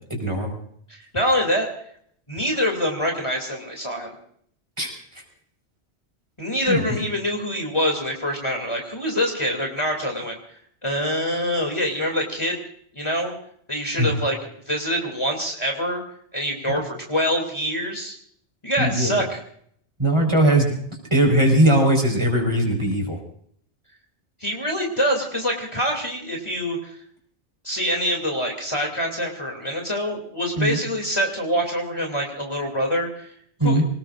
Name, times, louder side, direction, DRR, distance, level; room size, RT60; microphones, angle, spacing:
voice 1, 0.1-0.6 4.8-4.9 6.7-7.0 14.0-14.1 18.8-19.1 20.0-20.8 21.1-23.2 30.6-30.8 33.6-33.9, right 1 dB, 25° right, 0 dB, 4.5 m, -19 dB
voice 2, 0.9-1.7 2.3-4.1 6.4-10.4 10.8-12.6 12.9-13.3 13.7-14.4 14.7-16.0 16.3-18.2 18.6-19.4 24.4-27.0 27.6-33.3 33.6-33.8, equal, 25° left, 1 dB, 2.8 m, -25 dB
26.5 x 19.5 x 2.5 m, 0.64 s
omnidirectional pair, 1.2 m